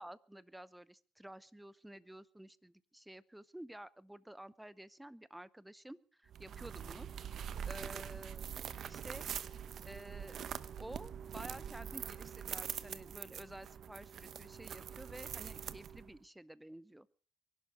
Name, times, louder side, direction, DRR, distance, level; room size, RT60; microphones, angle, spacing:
voice 1, 0.0-7.1 7.7-8.6 8.8-9.2 9.8-10.4 10.8-17.1, right 1 dB, 5° right, 18 dB, 0.8 m, -51 dB
sound 1, 6.3-16.2, right 8 dB, 55° right, 0.9 m, -44 dB
23.5 x 11.5 x 5.0 m, 0.39 s
cardioid pair, 95°, 0 cm